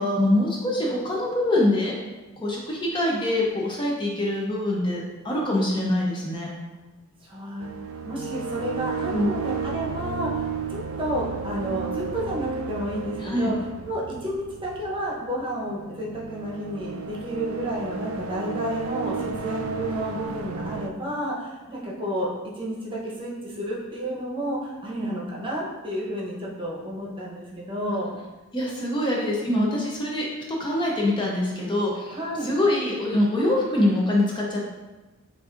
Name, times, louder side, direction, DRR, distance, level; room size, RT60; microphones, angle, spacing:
voice 1, 0.0-1.9 2.4-6.5 9.1-9.3 13.2-13.5 28.5-34.7, left 1 dB, 25° left, -3 dB, 0.5 m, -24 dB
voice 2, 7.2-7.7 8.1-13.6 13.8-22.3 22.5-28.1 32.1-32.5, right 1 dB, 25° right, -5 dB, 0.8 m, -31 dB
sound 1, 7.6-20.9, right 5 dB, 70° right, 0.3 m, -33 dB
6.2 x 2.5 x 2.5 m, 1.2 s
head